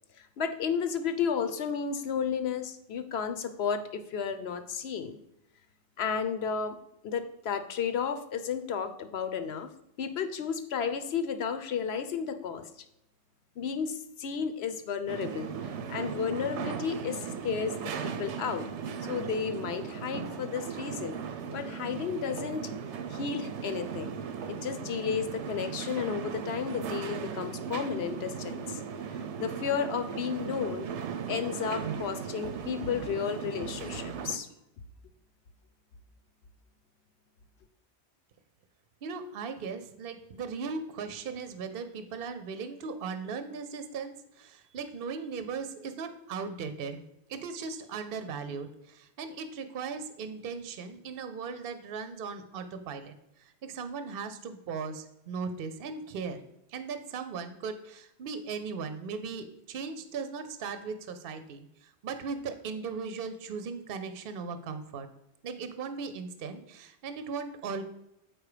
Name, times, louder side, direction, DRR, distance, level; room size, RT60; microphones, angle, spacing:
voice 1, 0.4-5.2 6.0-6.8 7.0-9.7 10.0-12.7 13.6-15.5 15.9-17.7 18.0-18.7 19.0-21.2 21.5-22.7 23.1-24.1 24.5-28.8 29.4-30.9 31.3-34.5, left 7 dB, 70° left, 9 dB, 0.9 m, -32 dB
sound 1, 15.1-34.4, right 7 dB, 85° right, 1.0 m, -37 dB
voice 2, 39.0-47.0 47.3-53.1 53.6-56.4 56.7-65.1 65.4-67.8, right 5 dB, 60° right, 9 dB, 0.8 m, -38 dB
7.7 x 4.8 x 4.9 m, 0.83 s
omnidirectional pair, 1.2 m